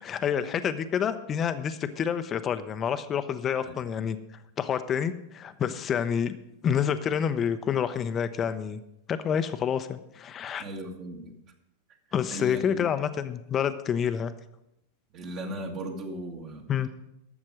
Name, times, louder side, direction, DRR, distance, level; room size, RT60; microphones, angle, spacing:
voice 1, 0.0-4.2 4.6-6.4 6.6-8.8 9.1-10.6 12.1-14.3 16.7-16.9, left 8 dB, 30° left, 11 dB, 0.7 m, -28 dB
voice 2, 10.6-11.3 12.3-12.9 15.1-16.9, right 1 dB, 40° right, 1 dB, 1.8 m, -37 dB
12.0 x 7.3 x 6.3 m, 0.83 s
figure-of-eight pair, 95°, 0 cm